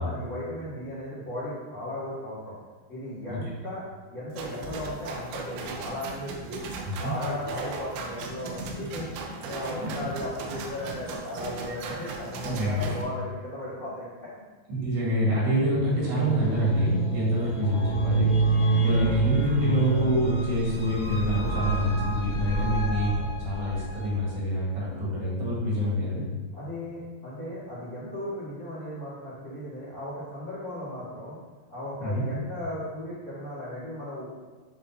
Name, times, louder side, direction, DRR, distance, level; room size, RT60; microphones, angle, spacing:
voice 1, 0.0-2.5 2.9-3.8 4.1-6.6 6.9-14.3 26.6-31.4 31.7-34.3, left 1 dB, 90° left, -10 dB, 0.6 m, -36 dB
sound 1, 4.3-13.0, right 4 dB, 90° right, 3.0 m, -37 dB
voice 2, 12.4-13.0 14.7-26.2 32.0-32.3, equal, 70° right, -5 dB, 3.8 m, -27 dB
sound 2, 15.9-24.2, right 3 dB, 65° left, 1.6 m, -27 dB
10.0 x 4.0 x 2.9 m, 1.4 s
omnidirectional pair, 5.0 m